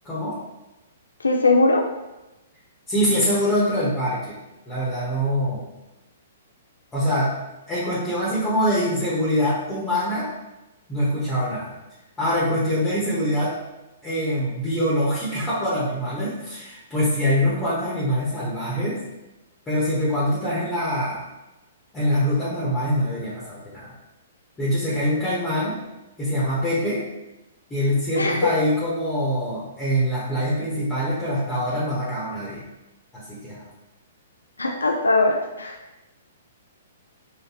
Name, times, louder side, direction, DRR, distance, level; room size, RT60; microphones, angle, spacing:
voice 1, 0.0-0.4 2.9-4.4 4.7-5.7 6.9-7.3 7.7-10.3 10.9-11.8 12.2-13.6 14.0-19.0 19.7-21.2 21.9-23.9 24.6-25.8 26.2-27.0 27.7-32.6 33.1-33.6, equal, 15° left, -9 dB, 1.2 m, -24 dB
voice 2, 1.2-1.9 28.2-28.6 34.6-35.8, left 2 dB, 85° left, 2 dB, 0.4 m, -20 dB
3.9 x 3.1 x 3.0 m, 0.99 s
figure-of-eight pair, 120°, 0 cm